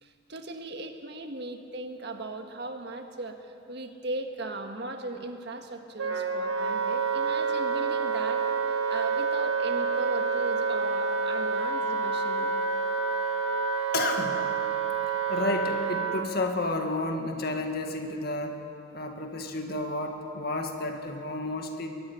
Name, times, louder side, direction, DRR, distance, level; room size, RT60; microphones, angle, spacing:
voice 1, 0.0-12.5, right 2 dB, 60° right, 5 dB, 1.7 m, -38 dB
Wind instrument woodwind instrument, 6.0-16.3, right 5 dB, 85° right, 1.6 m, -28 dB
voice 2, 13.9-14.5 15.3-18.6 18.9-21.9, left 2 dB, 50° left, 4 dB, 2.0 m, -31 dB
21.5 x 15.0 x 9.9 m, 2.7 s
head